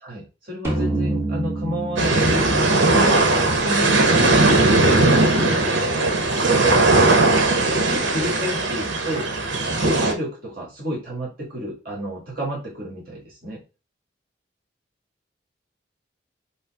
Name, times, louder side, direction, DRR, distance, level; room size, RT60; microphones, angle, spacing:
voice 1, 0.0-6.1 6.4-9.3 9.7-13.6, right 1 dB, 45° right, -4 dB, 1.9 m, -30 dB
sound 1, 0.6-4.1, right 2 dB, 15° right, 1.0 m, -28 dB
sound 2, 2.0-10.1, right 2 dB, 75° right, 0.9 m, -18 dB
5.4 x 2.1 x 4.8 m, 0.31 s
head